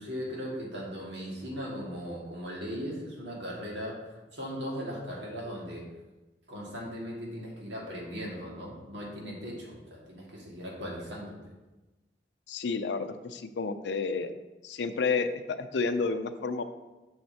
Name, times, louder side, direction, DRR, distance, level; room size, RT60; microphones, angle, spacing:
voice 1, 0.0-5.9 6.5-11.4, equal, 85° right, -4 dB, 2.0 m, -38 dB
voice 2, 12.5-14.3 14.6-16.6, left 4 dB, 80° left, 10 dB, 0.5 m, -30 dB
7.5 x 6.4 x 2.8 m, 1.1 s
head